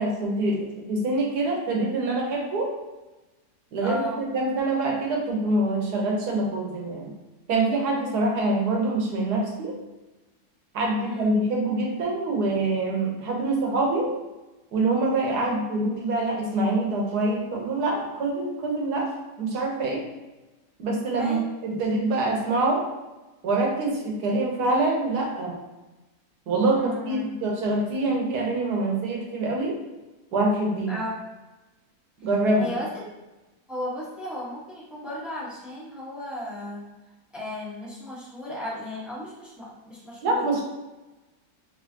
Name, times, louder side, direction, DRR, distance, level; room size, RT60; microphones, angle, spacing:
voice 1, 0.0-2.7 3.7-7.1 7.5-9.8 10.7-14.1 14.7-19.1 19.4-20.0 20.8-22.8 23.4-25.6 26.5-29.8 30.3-31.0 32.2-32.7 40.2-40.6, right 2 dB, 70° right, -1 dB, 1.4 m, -25 dB
voice 2, 3.8-4.2 11.0-11.3 15.3-15.5 21.1-21.4 26.8-27.2 30.9-31.1 32.6-32.9 33.7-36.8 37.3-40.5, left 1 dB, ahead, -7 dB, 0.9 m, -35 dB
4.2 x 3.3 x 2.8 m, 1.1 s
omnidirectional pair, 1.8 m